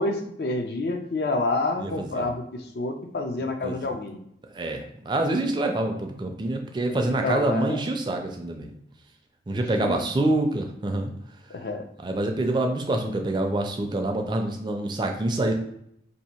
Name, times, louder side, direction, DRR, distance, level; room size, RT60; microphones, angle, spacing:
voice 1, 0.0-4.2 7.0-7.8 9.8-10.0 11.5-11.8, left 2 dB, 65° left, 5 dB, 0.5 m, -28 dB
voice 2, 1.8-2.3 3.6-3.9 4.5-8.7 9.5-11.1 12.0-15.5, right 2 dB, 25° right, 4 dB, 0.3 m, -26 dB
2.7 x 2.6 x 4.3 m, 0.73 s
head